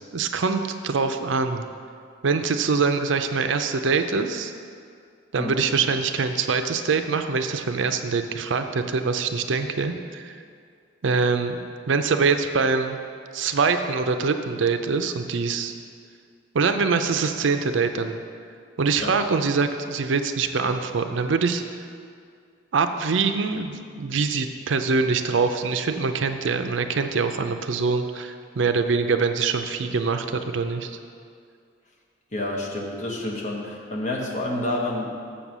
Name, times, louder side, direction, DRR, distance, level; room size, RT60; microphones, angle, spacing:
voice 1, 0.1-1.7 2.2-4.5 5.3-10.4 11.0-11.6 11.9-13.0 13.3-15.7 16.5-18.2 18.8-21.6 22.7-31.0, right 4 dB, 65° right, 7 dB, 0.5 m, -24 dB
voice 2, 5.3-5.7 19.0-19.1 32.3-35.1, left 1 dB, 35° left, -2 dB, 1.2 m, -29 dB
7.2 x 7.0 x 6.0 m, 2.2 s
head